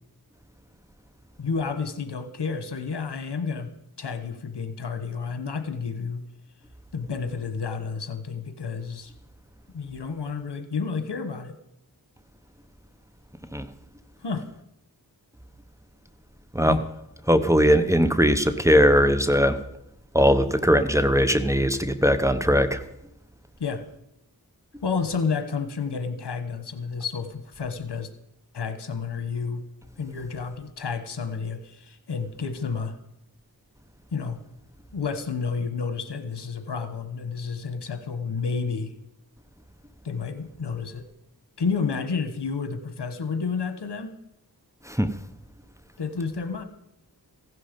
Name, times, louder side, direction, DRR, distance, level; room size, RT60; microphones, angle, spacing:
voice 1, 1.4-3.7 4.0-6.3 6.9-9.1 9.7-11.6 14.2-14.4 16.6-16.8 23.6-23.8 24.8-28.1 28.5-29.7 30.0-33.0 34.1-34.4 34.9-38.9 40.0-41.0 41.6-44.1 46.0-46.6, left 5 dB, 85° left, 10 dB, 1.2 m, -30 dB
voice 2, 17.3-19.6 20.1-22.8 44.9-45.1, equal, 5° right, 9 dB, 1.0 m, -20 dB
15.5 x 11.0 x 5.3 m, 0.81 s
wide cardioid pair, 45°, 40 cm